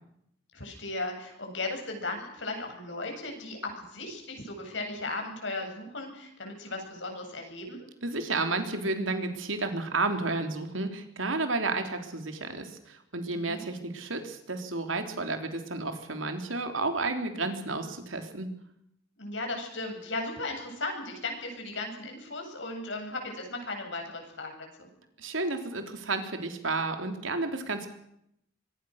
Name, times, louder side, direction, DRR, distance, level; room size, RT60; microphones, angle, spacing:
voice 1, 0.5-7.9 13.3-13.6 19.2-24.9, left 2 dB, 70° left, 3 dB, 7.8 m, -36 dB
voice 2, 8.0-18.5 25.2-27.9, right 3 dB, 90° right, 6 dB, 3.5 m, -31 dB
25.5 x 22.5 x 6.6 m, 0.76 s
head